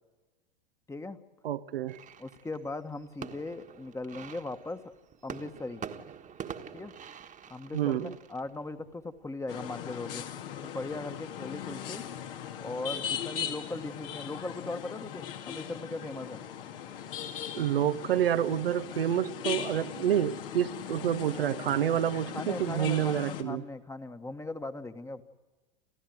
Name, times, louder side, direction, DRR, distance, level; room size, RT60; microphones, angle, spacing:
voice 1, 1.4-2.0 7.7-8.2 17.5-23.6, right 10 dB, 80° right, 1.0 m, -28 dB
sound 1, 1.9-12.0, right 8 dB, 25° right, 1.6 m, -46 dB
voice 2, 2.2-4.8 5.2-5.9 6.7-6.9 7.5-10.3 10.6-12.0 12.6-16.5 22.3-25.2, left 2 dB, 10° left, 1.5 m, -39 dB
sound 2, 9.5-23.4, left 9 dB, 70° left, 2.5 m, -39 dB
28.5 x 15.0 x 9.5 m
hypercardioid pair, 95°, 29 cm